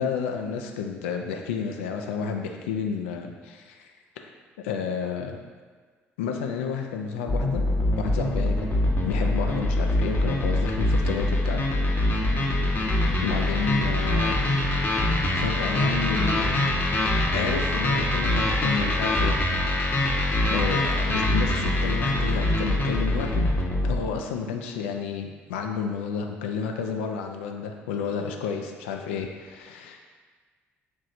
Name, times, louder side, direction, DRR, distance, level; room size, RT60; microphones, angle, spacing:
voice 1, 0.0-3.9 4.6-5.4 6.2-7.6 8.0-11.6 13.2-14.4 15.3-16.7 17.3-19.4 20.4-30.0, left 6 dB, 80° left, 3 dB, 0.3 m, -31 dB
sound 1, 7.3-24.0, left 1 dB, 30° left, 0.7 m, -24 dB
3.1 x 2.6 x 4.1 m, 1.5 s
hypercardioid pair, 50°, 7 cm